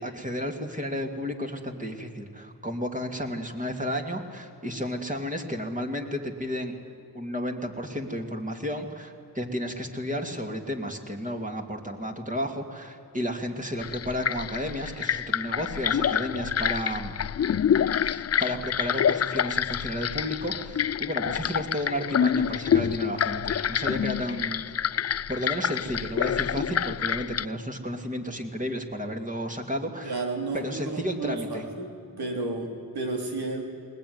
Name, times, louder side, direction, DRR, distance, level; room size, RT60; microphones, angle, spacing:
voice 1, 0.0-6.7 7.1-17.2 18.0-24.7 25.0-30.2 30.5-31.6, equal, 20° right, 3 dB, 2.8 m, -32 dB
sound 1, 13.8-27.5, left 8 dB, 40° left, 0.5 m, -27 dB
voice 2, 30.0-33.6, right 3 dB, 80° right, 2 dB, 3.7 m, -32 dB
20.0 x 19.5 x 9.7 m, 2.6 s
cardioid pair, 60°, 38 cm